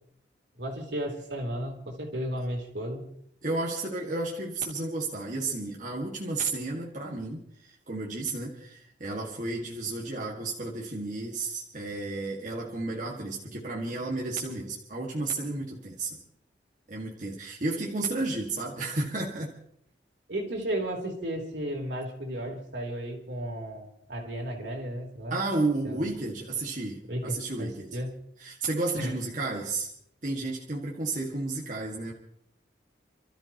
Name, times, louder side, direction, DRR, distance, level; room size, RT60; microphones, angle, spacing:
voice 1, 0.6-3.1 20.3-25.4 25.8-26.1 27.1-28.1 29.0-29.1, equal, 75° right, 0 dB, 3.6 m, -34 dB
voice 2, 3.4-16.2 16.9-19.5 25.3-28.0 28.4-29.9 30.2-32.1, right 2 dB, 45° right, -2 dB, 2.0 m, -32 dB
30.0 x 13.0 x 3.0 m, 0.71 s
head